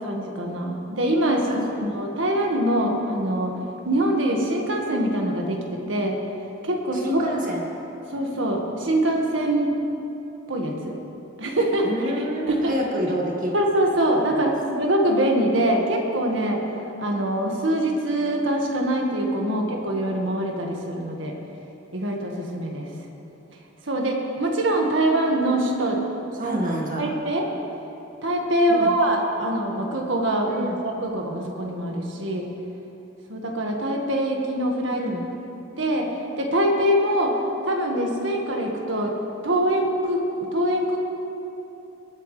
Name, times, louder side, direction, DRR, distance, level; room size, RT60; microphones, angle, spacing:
voice 1, 0.0-3.5 3.8-6.2 6.6-7.2 8.1-9.7 10.5-11.0 11.4-11.9 12.2-12.8 13.5-16.6 17.0-21.3 21.9-22.9 23.9-26.0 26.4-26.6 27.0-27.4 28.2-30.5 30.8-32.5 33.3-35.0 35.8-36.1 36.4-37.4 37.6-39.1 39.4-41.0, right 1 dB, 80° right, 1 dB, 1.7 m, -24 dB
voice 2, 1.5-1.8 6.9-7.7 11.8-13.5 14.3-14.6 19.5-19.7 26.4-27.1 28.7-28.9 30.5-30.8 34.9-35.3, equal, 45° right, -1 dB, 2.0 m, -28 dB
22.5 x 9.2 x 3.3 m, 3.0 s
head